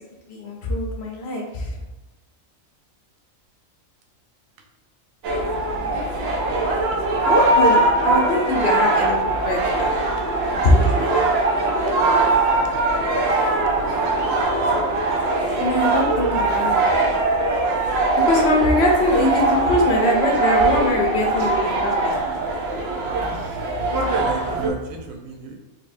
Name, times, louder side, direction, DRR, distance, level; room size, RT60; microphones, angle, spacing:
voice 1, 0.3-1.8 7.2-10.0 10.5-11.3 15.6-16.9 18.2-22.1, left 1 dB, 60° left, 0 dB, 0.9 m, -22 dB
sound 1, 5.2-24.7, right 2 dB, 60° right, 0.8 m, -21 dB
voice 2, 23.3-23.6 24.1-25.6, right 5 dB, 85° right, 3 dB, 1.1 m, -34 dB
4.1 x 3.0 x 2.5 m, 1.1 s
omnidirectional pair, 1.4 m